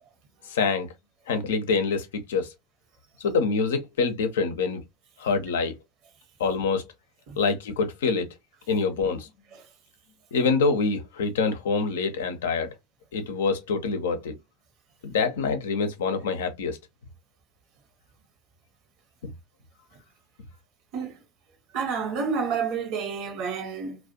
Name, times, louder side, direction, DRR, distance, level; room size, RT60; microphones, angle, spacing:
voice 1, 0.5-0.9 1.3-2.5 3.2-4.8 5.2-5.7 6.4-6.8 7.4-8.3 8.7-9.3 10.3-12.7 13.1-14.3 15.0-16.8 19.2-19.3, left 4 dB, 65° left, 0.5 m, -25 dB
voice 2, 21.7-24.0, right 5 dB, 50° right, 0.8 m, -29 dB
2.3 x 2.1 x 2.5 m
figure-of-eight pair, 75°, 0 cm